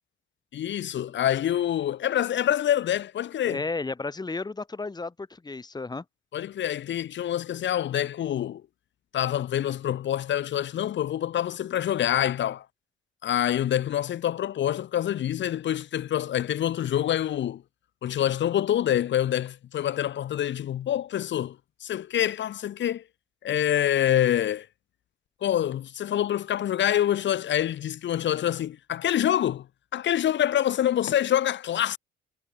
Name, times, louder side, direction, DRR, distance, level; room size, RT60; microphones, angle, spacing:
voice 1, 0.5-3.6 6.3-8.6 9.1-12.7 13.2-17.6 18.0-23.0 23.4-24.7 25.4-29.7 29.9-32.0, left 11 dB, 65° left, 1.7 m, -26 dB
voice 2, 3.4-6.0, left 3 dB, 20° left, 2.1 m, -33 dB
cardioid pair, 90°, 20 cm